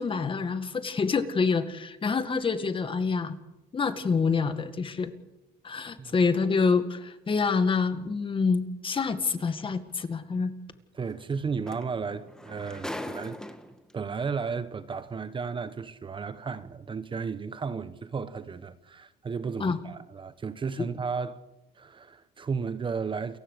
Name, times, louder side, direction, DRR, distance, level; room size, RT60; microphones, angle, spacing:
voice 1, 0.0-3.4 3.7-5.1 5.6-10.5 19.6-19.8, left 5 dB, 30° left, 2.0 m, -27 dB
sound 1, 9.5-9.6 11.3-11.4 11.7-13.9 14.8-14.9, left 1 dB, 5° left, 1.7 m, -40 dB
voice 2, 10.9-13.4 13.9-21.4 21.7-23.4, right 5 dB, 30° right, 1.1 m, -34 dB
29.0 x 15.5 x 6.7 m
cardioid pair, 110°, 17 cm